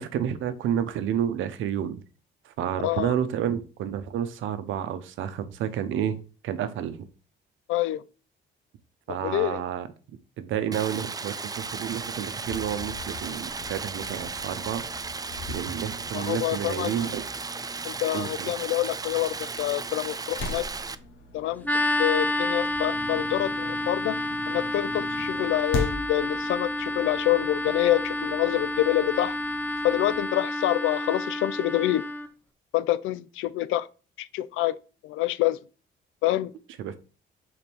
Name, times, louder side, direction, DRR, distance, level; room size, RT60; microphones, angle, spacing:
voice 1, 0.0-2.0 2.4-6.2 6.4-7.1 9.1-9.9 10.4-14.8 15.5-17.2 18.1-18.5 36.8-37.0, right 9 dB, 85° right, 0.8 m, -30 dB
voice 2, 2.8-3.1 7.7-8.0 9.1-9.6 16.1-16.9 17.8-20.7 21.3-21.7 22.0-24.2 24.5-29.4 29.8-32.1 32.7-33.9 34.2-34.8 35.0-35.6 36.2-36.5, left 14 dB, 90° left, 0.4 m, -26 dB
Stream, 10.7-20.9, right 4 dB, 20° right, 0.4 m, -35 dB
sound 1, 11.5-30.2, left 2 dB, 75° left, 1.3 m, -41 dB
sound 2, 21.6-32.3, left 1 dB, 10° left, 0.8 m, -29 dB
5.2 x 4.0 x 4.4 m
cardioid pair, 90°, 20 cm